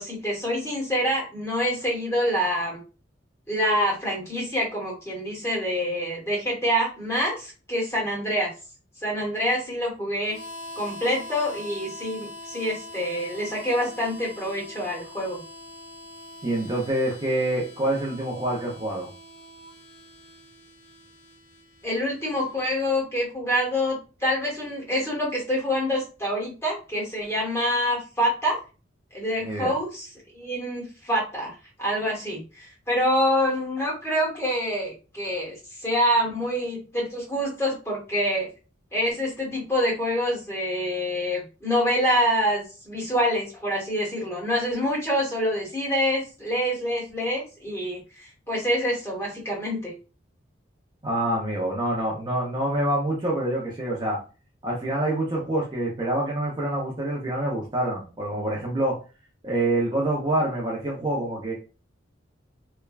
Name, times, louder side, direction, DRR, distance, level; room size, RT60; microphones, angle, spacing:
voice 1, 0.0-2.8 3.5-8.5 9.0-10.4 10.8-15.4 21.8-28.6 29.1-30.1 30.3-31.5 31.8-38.5 38.9-49.9, equal, 15° left, -4 dB, 1.1 m, -26 dB
Harmonica, 10.3-22.9, left 1 dB, 65° left, 0.8 m, -43 dB
voice 2, 16.4-19.1 29.4-29.7 51.0-54.2 54.6-59.0 59.4-61.5, right 1 dB, 25° right, -3 dB, 0.5 m, -26 dB
3.2 x 2.2 x 2.3 m, 0.33 s
head